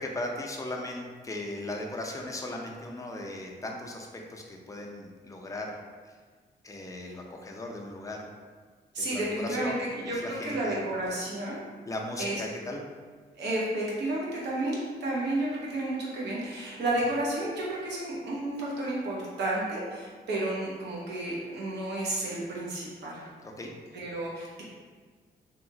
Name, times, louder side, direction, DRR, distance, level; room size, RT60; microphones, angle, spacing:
voice 1, 0.0-5.7 6.0-6.2 6.6-8.2 9.0-10.8 11.9-12.8 23.4-23.7, left 1 dB, 20° left, 0 dB, 0.4 m, -37 dB
voice 2, 8.9-11.6 12.2-12.4 13.4-23.3 23.9-24.6, right 1 dB, 90° right, -5 dB, 0.8 m, -31 dB
2.8 x 2.3 x 2.7 m, 1.5 s
cardioid pair, 80°, 17 cm